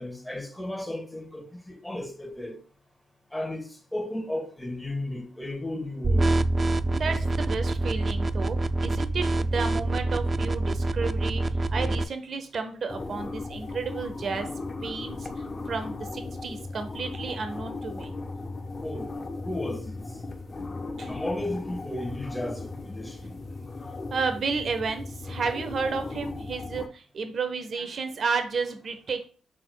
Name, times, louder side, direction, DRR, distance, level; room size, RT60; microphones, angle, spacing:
voice 1, 0.0-2.6 3.3-6.3 18.8-19.1 19.4-20.0 21.1-23.4, left 1 dB, 10° left, 1.5 m, -34 dB
sound 1, 6.0-12.0, right 2 dB, 40° right, 0.3 m, -26 dB
voice 2, 6.9-8.6 8.8-11.4 11.7-14.5 14.8-18.1 21.0-21.1 24.1-29.3, right 4 dB, 55° right, 0.8 m, -32 dB
sound 2, 12.9-26.9, left 3 dB, 40° left, 0.7 m, -37 dB
6.1 x 3.7 x 2.3 m
hypercardioid pair, 45°, 0 cm